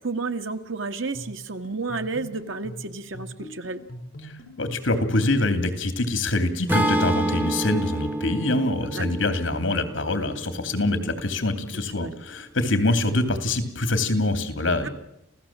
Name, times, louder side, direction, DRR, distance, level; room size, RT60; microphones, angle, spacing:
voice 1, 0.0-3.8 8.8-9.1 11.7-12.1 14.8-14.9, right 3 dB, 80° right, 7 dB, 1.7 m, -31 dB
sound 1, 1.1-5.0, equal, 45° left, 5.7 m, -42 dB
voice 2, 4.6-14.9, left 2 dB, 70° left, 9 dB, 2.9 m, -24 dB
Acoustic guitar / Strum, 6.7-10.9, right 1 dB, 10° right, 1.9 m, -28 dB
28.0 x 16.5 x 7.5 m, 0.85 s
head